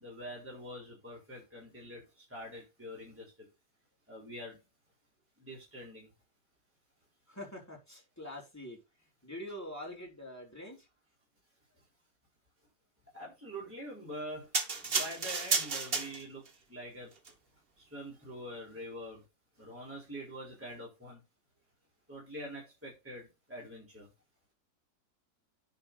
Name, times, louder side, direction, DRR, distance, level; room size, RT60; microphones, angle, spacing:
voice 1, 0.0-2.0 2.3-3.2 4.1-4.5 5.4-6.1 13.1-14.5 14.9-16.4 16.7-17.1 17.9-19.2 19.6-21.2 22.1-23.2 23.5-24.0, equal, 5° right, -3 dB, 4.1 m, -44 dB
voice 2, 7.3-8.8 9.2-10.9, left 1 dB, 10° left, -1 dB, 3.6 m, -44 dB
sound 1, 14.5-16.5 17.2-17.3, right 4 dB, 35° right, 1.4 m, -32 dB
9.6 x 4.4 x 5.3 m, 0.25 s
omnidirectional pair, 1.9 m